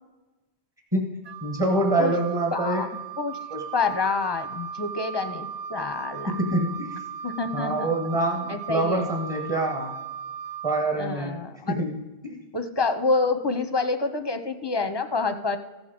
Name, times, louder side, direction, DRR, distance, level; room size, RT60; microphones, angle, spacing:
voice 1, 0.9-2.9 3.5-3.6 6.3-6.9 7.5-9.9 10.6-11.4 11.7-12.4, right 2 dB, 25° right, 2 dB, 1.4 m, -26 dB
Wind instrument woodwind instrument, 1.2-10.9, right 7 dB, 75° right, 1.0 m, -37 dB
voice 2, 2.5-2.9 3.2-3.4 3.7-6.4 7.2-7.9 8.5-9.0 11.0-11.9 12.3-15.6, left 4 dB, 30° left, 8 dB, 0.6 m, -27 dB
15.0 x 6.9 x 5.1 m, 1.2 s
omnidirectional pair, 1.1 m